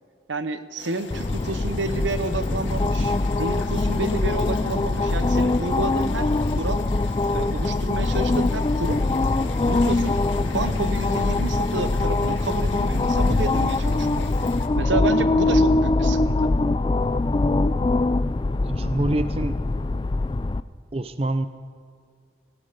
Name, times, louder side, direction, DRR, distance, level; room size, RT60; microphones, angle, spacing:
voice 1, 0.3-6.3 6.6-6.8 7.3-9.0 9.7-14.3 14.7-16.5, right 2 dB, 85° right, 11 dB, 0.9 m, -30 dB
sound 1, 0.8-14.7, left 4 dB, 85° left, 1.6 m, -41 dB
sound 2, 1.1-20.6, left 2 dB, 25° left, 0.3 m, -23 dB
sound 3, 2.6-4.5 5.3-7.2 7.6-7.7 8.1-8.2, equal, 60° left, 4.6 m, -38 dB
voice 2, 18.7-19.6 20.9-21.5, right 1 dB, 30° right, 11 dB, 0.5 m, -26 dB
18.0 x 15.5 x 5.2 m, 2.1 s
head